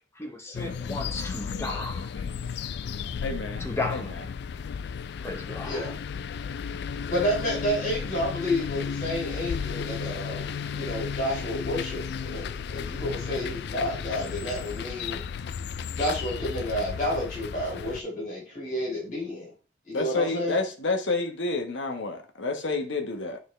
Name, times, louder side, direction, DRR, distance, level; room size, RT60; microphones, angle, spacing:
voice 1, 0.2-2.1 3.6-4.1 5.2-5.9, left 2 dB, 15° left, 1.0 m, -34 dB
sound 1, 0.5-18.0, left 6 dB, 60° left, 0.3 m, -34 dB
voice 2, 3.2-4.2 19.9-23.4, left 3 dB, 85° left, 1.2 m, -29 dB
voice 3, 5.6-6.0 7.0-15.2 15.9-19.5 19.9-20.6, equal, 45° left, 3.6 m, -30 dB
9.1 x 4.0 x 3.3 m
head